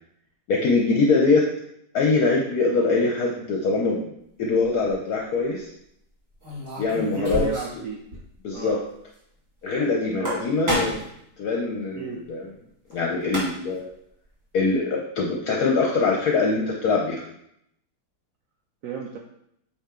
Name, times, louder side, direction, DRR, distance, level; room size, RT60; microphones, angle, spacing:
voice 1, 0.5-1.5 1.9-4.1 4.4-5.7 6.8-7.4 8.4-8.8 9.6-11.0 11.4-12.5 12.9-13.9 14.5-17.2, left 3 dB, 65° left, -1 dB, 1.3 m, -23 dB
sound 1, 4.6-4.9 6.4-7.8 8.1-8.2 8.5-8.6 10.0-11.1 12.9-13.0 13.2-13.8, equal, 50° right, 2.7 m, -30 dB
voice 2, 7.1-8.0 8.5-8.8 10.2-10.3 11.9-12.2 18.8-19.2, right 5 dB, 65° right, 1 dB, 0.9 m, -32 dB
8.4 x 3.5 x 3.7 m, 0.74 s
omnidirectional pair, 1.8 m